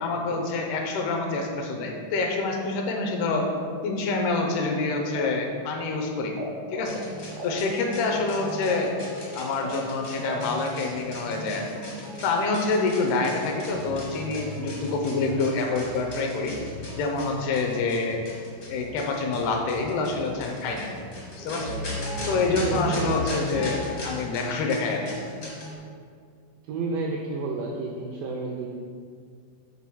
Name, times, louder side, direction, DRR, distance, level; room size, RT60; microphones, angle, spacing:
voice 1, 0.0-3.5 3.8-6.4 6.7-7.0 7.4-9.0 9.4-11.7 12.2-16.5 17.0-18.2 18.7-20.9 21.4-21.8 22.3-25.1, left 3 dB, 80° left, 2 dB, 2.9 m, -27 dB
sound 1, 5.1-6.4 6.7-11.2, right 2 dB, 60° right, 0.5 m, -39 dB
sound 2, 6.8-25.7, left 1 dB, 65° left, 0.8 m, -37 dB
voice 2, 22.6-23.1 26.6-28.7, right 3 dB, 85° right, 0 dB, 1.9 m, -31 dB
7.3 x 3.9 x 6.1 m, 2.1 s
omnidirectional pair, 4.5 m